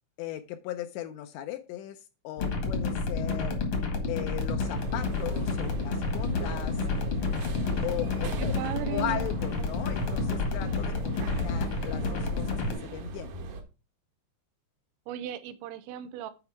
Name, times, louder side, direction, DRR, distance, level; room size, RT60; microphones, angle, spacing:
voice 1, 0.2-3.6 4.1-6.8 7.8-8.6 8.9-13.3, left 12 dB, 80° left, 2.7 m, -37 dB
sound 1, 2.4-12.7, left 3 dB, 55° left, 1.6 m, -30 dB
sound 2, 4.6-13.6, right 3 dB, 65° right, 2.5 m, -39 dB
voice 2, 8.4-9.3 15.1-16.3, right 12 dB, 85° right, 3.0 m, -36 dB
8.9 x 4.7 x 4.7 m
omnidirectional pair, 5.3 m